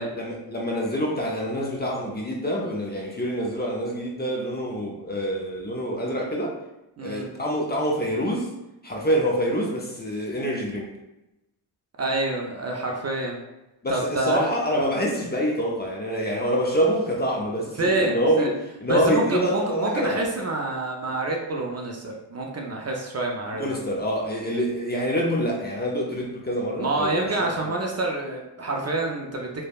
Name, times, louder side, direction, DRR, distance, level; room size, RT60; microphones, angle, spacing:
voice 1, 0.0-6.5 7.0-8.5 8.8-10.9 13.8-18.5 18.8-20.2 23.6-27.3 27.6-27.7, equal, 20° left, -2 dB, 0.6 m, -26 dB
voice 2, 7.0-7.3 12.0-13.4 13.9-14.5 17.7-18.5 18.9-23.9 26.8-29.6, right 2 dB, 35° right, 0 dB, 0.5 m, -27 dB
3.2 x 2.2 x 2.3 m, 0.94 s
supercardioid pair, 55°, 47 cm